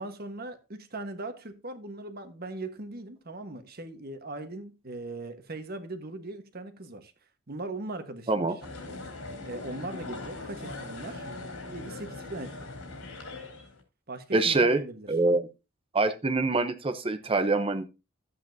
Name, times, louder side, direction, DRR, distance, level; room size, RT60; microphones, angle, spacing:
voice 1, 0.0-7.1 7.5-8.5 9.4-11.3 11.7-12.7 14.1-15.1, right 2 dB, 45° right, 1.3 m, -39 dB
sound 1, 8.6-13.8, left 3 dB, 90° left, 3.7 m, -40 dB
voice 2, 14.3-14.8 15.1-15.5 15.9-17.9, right 3 dB, 25° right, 0.7 m, -25 dB
13.0 x 8.5 x 2.7 m
head